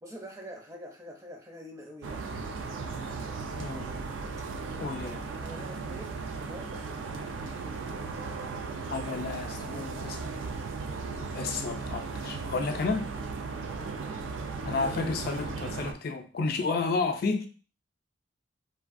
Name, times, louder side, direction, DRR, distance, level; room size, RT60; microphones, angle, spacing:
voice 1, 0.0-2.3 5.1-7.3 13.8-14.1, equal, 15° right, 3 dB, 0.4 m, -46 dB
sound 1, 2.0-15.9, right 4 dB, 85° right, 0.4 m, -36 dB
voice 2, 3.6-3.9 4.8-5.2 8.9-10.2 11.3-13.1 14.6-17.5, left 4 dB, 50° left, 5 dB, 0.4 m, -31 dB
3.3 x 2.3 x 2.4 m, 0.37 s
head